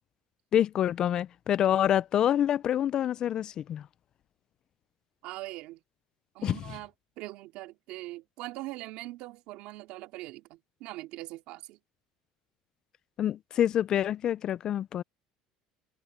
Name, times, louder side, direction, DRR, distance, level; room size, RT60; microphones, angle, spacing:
voice 1, 0.5-3.8 6.4-6.6 13.2-15.0, left 10 dB, 35° left, 0.3 m, -26 dB
voice 2, 5.2-5.8 6.3-11.8, right 18 dB, 65° right, 2.5 m, -42 dB
cardioid pair, 150°, 2 cm